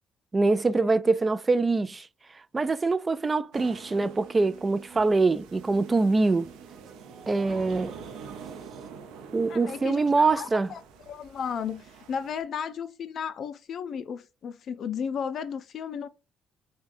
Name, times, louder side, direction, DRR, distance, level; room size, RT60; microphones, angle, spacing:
voice 1, 0.3-2.1 2.5-6.5 7.3-7.9 9.3-10.7, right 3 dB, 25° right, 0.3 m, -24 dB
sound 1, 3.5-12.4, right 6 dB, 90° right, 0.6 m, -46 dB
sound 2, 3.7-8.9, right 8 dB, 55° right, 0.8 m, -50 dB
voice 2, 9.5-10.8 11.1-16.1, left 7 dB, 60° left, 0.4 m, -34 dB
6.2 x 2.2 x 2.5 m
cardioid pair, 85°, 0 cm